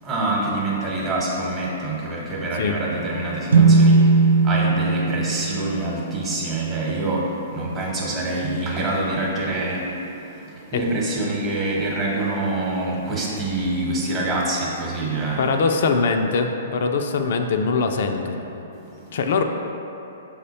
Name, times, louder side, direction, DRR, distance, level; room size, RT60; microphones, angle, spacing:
voice 1, 0.0-4.1 4.4-9.9 10.5-15.6, right 2 dB, 20° right, -4 dB, 0.9 m, -26 dB
sound 1, 3.5-7.1, right 3 dB, 80° right, 0.3 m, -18 dB
voice 2, 15.4-18.5 19.1-19.4, left 4 dB, 65° left, 5 dB, 0.3 m, -22 dB
6.1 x 2.1 x 4.0 m, 2.9 s
hypercardioid pair, 125°, 0 cm